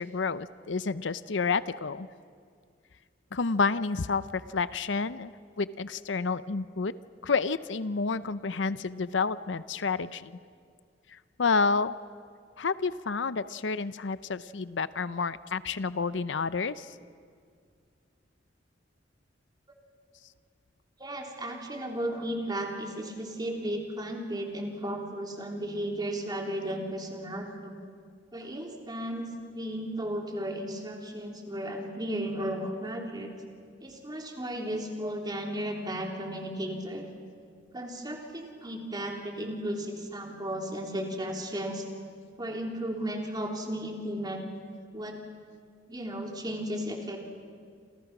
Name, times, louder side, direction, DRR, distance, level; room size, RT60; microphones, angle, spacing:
voice 1, 0.0-2.1 3.3-6.9 7.2-10.4 11.4-11.9 12.6-16.9, left 4 dB, 75° left, 15 dB, 0.7 m, -29 dB
voice 2, 21.0-27.8 28.3-29.3 29.5-33.3 33.8-37.1 37.7-41.8 42.4-44.4 44.9-45.2 45.9-47.2, right 1 dB, 25° right, 1 dB, 3.4 m, -34 dB
28.5 x 27.0 x 6.1 m, 2.2 s
head